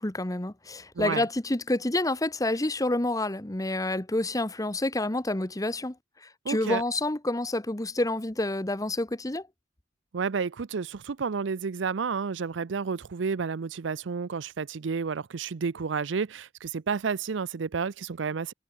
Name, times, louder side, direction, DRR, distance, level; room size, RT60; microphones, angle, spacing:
voice 1, 0.0-5.9 6.2-9.5, left 2 dB, 20° left, 1.1 m, -28 dB
voice 2, 1.0-1.3 6.4-6.8 10.1-18.5, right 5 dB, 90° right, 0.5 m, -31 dB
head